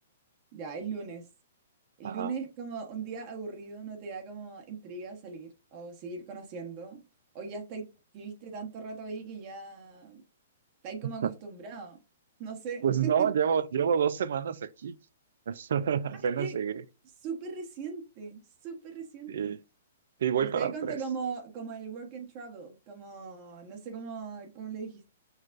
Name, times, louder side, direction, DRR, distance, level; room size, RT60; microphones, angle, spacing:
voice 1, 0.5-1.3 2.0-7.0 7.3-7.9 8.1-10.2 10.8-12.0 12.4-13.3 16.4-16.5 17.2-19.6 20.4-25.1, right 5 dB, 40° right, 1.1 m, -39 dB
voice 2, 12.8-15.0 15.5-16.8 19.3-19.6 20.2-21.0, right 8 dB, 70° right, 0.4 m, -28 dB
6.5 x 2.4 x 2.5 m
hypercardioid pair, 125°, 0 cm